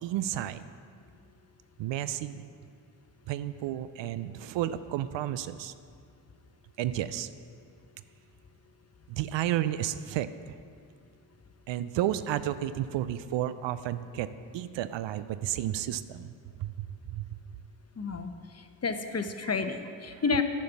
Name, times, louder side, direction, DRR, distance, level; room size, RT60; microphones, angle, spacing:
voice 1, 0.0-0.7 1.8-2.5 3.3-5.7 6.8-7.3 9.1-10.5 11.7-14.3 14.5-16.3 16.6-17.4 19.4-19.5 20.1-20.2, right 12 dB, 65° right, 14 dB, 0.6 m, -32 dB
voice 2, 18.0-18.3 18.8-20.4, left 4 dB, 30° left, 8 dB, 1.0 m, -30 dB
10.0 x 5.4 x 7.0 m, 2.3 s
hypercardioid pair, 40°, 50 cm